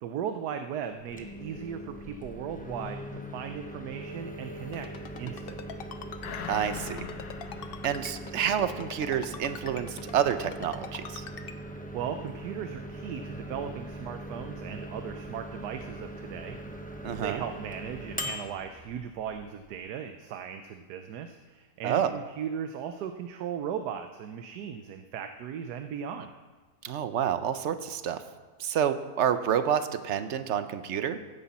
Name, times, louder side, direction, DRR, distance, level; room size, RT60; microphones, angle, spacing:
voice 1, 0.0-4.9 5.2-5.8 11.9-26.3, right 8 dB, 85° right, 7 dB, 1.3 m, -37 dB
Microwave oven, 1.0-19.8, right 1 dB, 10° left, 0.4 m, -41 dB
Ringtone, 4.7-11.5, left 7 dB, 50° left, 0.7 m, -42 dB
sound 1, 6.2-9.1 9.5-9.6, left 7 dB, 75° left, 1.4 m, -42 dB
voice 2, 6.5-7.0 7.8-11.2 17.0-17.4 21.8-22.1 26.8-28.2 28.6-31.2, right 9 dB, 55° right, 11 dB, 0.9 m, -28 dB
15.5 x 9.9 x 4.2 m, 1.4 s
omnidirectional pair, 1.7 m